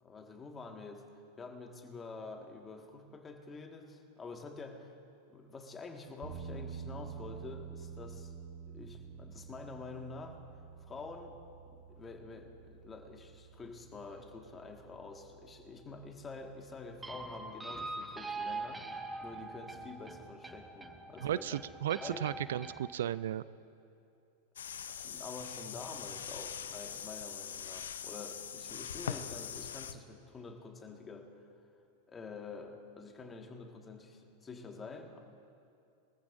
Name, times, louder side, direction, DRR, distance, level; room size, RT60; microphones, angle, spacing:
voice 1, 0.0-4.9 5.3-8.3 8.7-10.4 10.9-11.4 11.7-21.6 22.0-22.3 25.0-31.3 32.1-35.2, left 3 dB, 20° left, 3 dB, 1.7 m, -47 dB
sound 1, 6.2-18.5, right 6 dB, 40° right, 4.0 m, -50 dB
sound 2, 17.0-22.9, right 3 dB, 10° right, 1.0 m, -43 dB
voice 2, 21.2-23.4, right 11 dB, 70° right, 17 dB, 0.3 m, -35 dB
sound 3, 24.6-29.9, left 8 dB, 75° left, 0.6 m, -42 dB
23.0 x 14.5 x 2.6 m, 2.6 s
hypercardioid pair, 95°, 0 cm